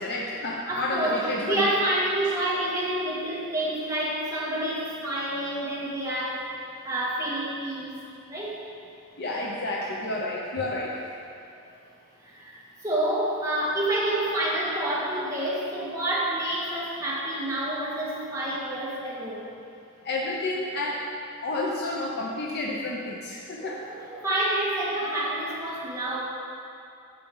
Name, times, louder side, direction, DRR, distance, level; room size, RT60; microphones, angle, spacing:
voice 1, 0.0-1.8 9.2-11.0 20.0-21.0 21.4-23.8, left 2 dB, 50° left, -3 dB, 0.8 m, -30 dB
voice 2, 0.7-6.5 6.8-8.0 8.3-8.6 12.2-19.4 23.5-26.2, right 1 dB, 15° right, -7 dB, 1.8 m, -28 dB
10.5 x 7.5 x 3.9 m, 2.6 s
head